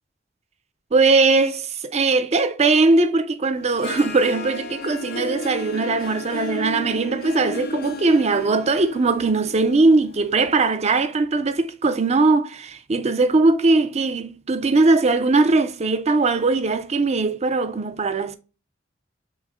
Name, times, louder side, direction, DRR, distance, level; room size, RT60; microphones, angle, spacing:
voice 1, 0.9-18.4, right 3 dB, 35° right, 0.5 m, -20 dB
Harp, 3.5-10.6, left 2 dB, 55° left, 0.5 m, -34 dB
6.1 x 2.1 x 3.6 m
head